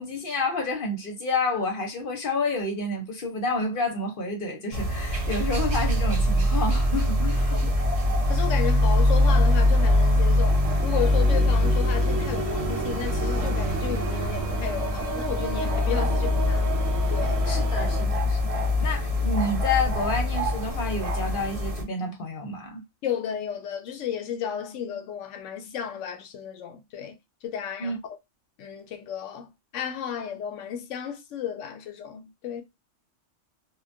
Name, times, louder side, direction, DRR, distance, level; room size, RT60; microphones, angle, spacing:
voice 1, 0.0-7.6 17.5-22.8 27.8-28.0, left 2 dB, 50° left, 0.8 m, -29 dB
sound 1, 4.7-21.8, left 1 dB, 50° right, 0.4 m, -23 dB
voice 2, 8.3-16.7 17.1-17.5 23.0-28.2 28.6-32.6, left 8 dB, 80° left, 0.9 m, -33 dB
sound 2, 10.4-18.0, right 5 dB, 85° right, 0.9 m, -35 dB
2.2 x 2.2 x 2.5 m
omnidirectional pair, 1.3 m